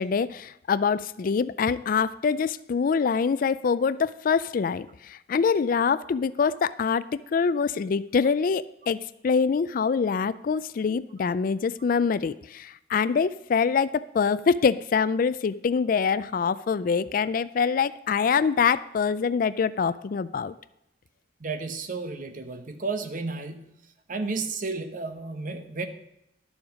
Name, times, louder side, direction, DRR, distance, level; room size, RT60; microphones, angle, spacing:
voice 1, 0.0-20.5, left 5 dB, 50° left, 16 dB, 0.4 m, -25 dB
voice 2, 21.4-23.7 24.1-25.9, right 3 dB, 50° right, 8 dB, 1.0 m, -32 dB
11.5 x 7.1 x 5.1 m, 0.82 s
head